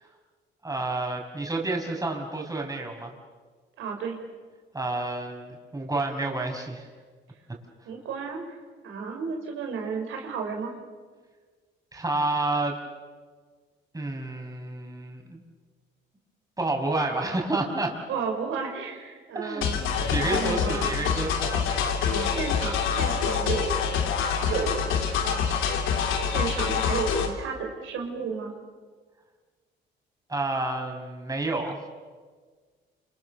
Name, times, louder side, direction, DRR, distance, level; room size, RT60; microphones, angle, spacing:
voice 1, 0.6-3.1 4.7-6.9 11.9-12.8 13.9-15.4 16.6-17.9 19.3-19.7 20.1-21.9 30.3-31.8, right 2 dB, 20° right, 2 dB, 5.9 m, -29 dB
voice 2, 3.8-4.2 7.9-8.4 8.8-10.7 18.1-19.8 20.2-21.0 22.0-24.2 24.4-25.6 26.3-28.5, right 5 dB, 85° right, 2 dB, 5.4 m, -33 dB
sound 1, 19.6-27.3, left 6 dB, 90° left, 3.3 m, -26 dB
sound 2, 19.7-22.8 23.3-23.4 24.9-25.2, left 5 dB, 50° left, 2.9 m, -40 dB
29.0 x 27.5 x 7.2 m, 1.5 s
cardioid pair, 90°, 20 cm